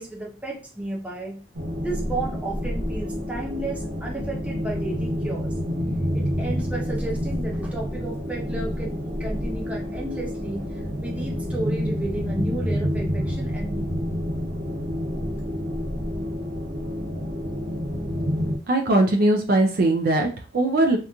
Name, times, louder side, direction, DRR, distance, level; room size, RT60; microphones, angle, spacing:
voice 1, 0.0-1.4 1.8-5.5 6.1-10.6 11.0-14.1, right 2 dB, 5° right, -3 dB, 0.6 m, -33 dB
sound 1, 1.5-18.6, equal, 75° right, 0.8 m, -28 dB
voice 2, 18.7-21.0, right 2 dB, 50° right, 3 dB, 0.4 m, -20 dB
2.8 x 2.4 x 2.2 m, 0.36 s
head